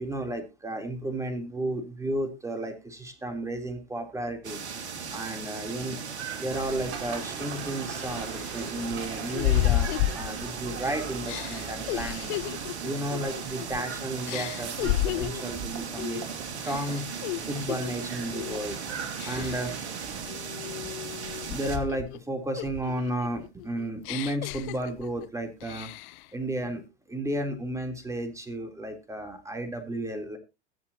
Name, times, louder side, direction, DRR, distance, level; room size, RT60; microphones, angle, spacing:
voice 1, 0.0-4.6 5.1-6.0 6.4-12.4 12.8-16.3 16.6-17.1 17.5-18.8 19.2-19.8 21.5-25.9 26.3-30.4, right 1 dB, 10° right, 5 dB, 3.7 m, -33 dB
sound 1, 4.4-21.8, right 6 dB, 75° right, 2.4 m, -38 dB
sound 2, 6.5-20.2, right 6 dB, 45° right, 3.6 m, -41 dB
sound 3, 7.4-7.5 8.0-10.8 11.2-13.9 14.3-15.5 16.0-16.3 16.6-17.9 18.3-18.7 19.2-19.8 20.3-22.2 22.6-25.3 25.6-26.3, left 15 dB, 50° left, 0.8 m, -32 dB
22.0 x 7.5 x 3.0 m, 0.27 s
hypercardioid pair, 95°, 34 cm